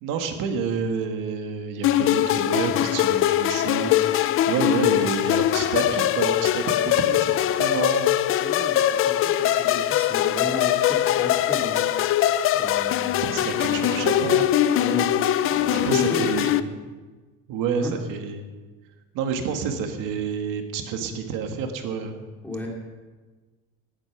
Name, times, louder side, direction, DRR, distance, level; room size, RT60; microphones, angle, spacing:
voice 1, 0.0-3.9 4.5-8.2 13.2-14.5 15.7-16.6 17.5-18.4 19.1-22.2, right 6 dB, 70° right, 5 dB, 1.9 m, -29 dB
sound 1, 1.8-16.6, left 12 dB, 40° left, 0.5 m, -22 dB
voice 2, 8.3-12.1 12.5-14.3 14.8-15.1 15.4-16.8 17.8-17.9 22.4-22.7, left 1 dB, 5° left, -1 dB, 2.5 m, -34 dB
19.0 x 8.8 x 6.1 m, 1.3 s
cardioid pair, 175°, 33 cm